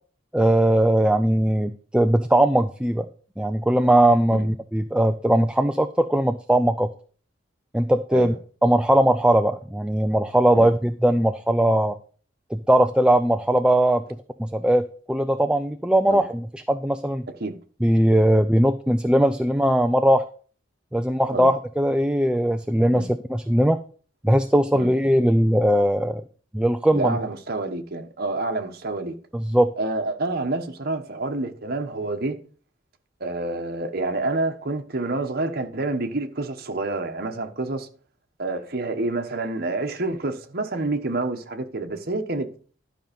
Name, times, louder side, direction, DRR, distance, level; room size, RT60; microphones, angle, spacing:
voice 1, 0.3-3.1 3.4-6.9 7.7-8.3 8.6-12.0 12.5-17.3 17.8-20.3 20.9-23.8 24.2-26.2 26.5-27.2 29.3-29.7, right 1 dB, 5° right, 0.4 m, -20 dB
voice 2, 26.9-29.2 29.8-32.4 33.2-37.9 38.4-42.5, right 2 dB, 55° right, 1.2 m, -28 dB
11.5 x 5.3 x 5.3 m
head